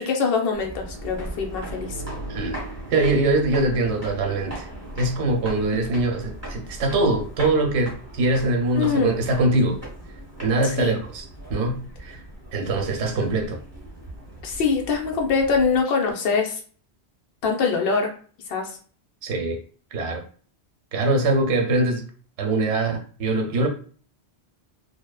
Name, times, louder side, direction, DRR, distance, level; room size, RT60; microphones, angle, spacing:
voice 1, 0.0-2.0 8.7-9.2 10.6-11.0 14.4-16.6 17.4-18.1 18.5-18.8, left 5 dB, 65° left, 0.8 m, -23 dB
sound 1, 0.5-15.8, right 1 dB, 15° right, 0.8 m, -38 dB
voice 2, 2.3-2.6 2.9-4.7 5.0-9.8 10.4-12.2 12.5-13.6 19.2-19.6 19.9-20.2 20.9-22.0 22.4-23.7, right 2 dB, 90° right, 0.9 m, -23 dB
2.7 x 2.0 x 2.2 m
omnidirectional pair, 1.1 m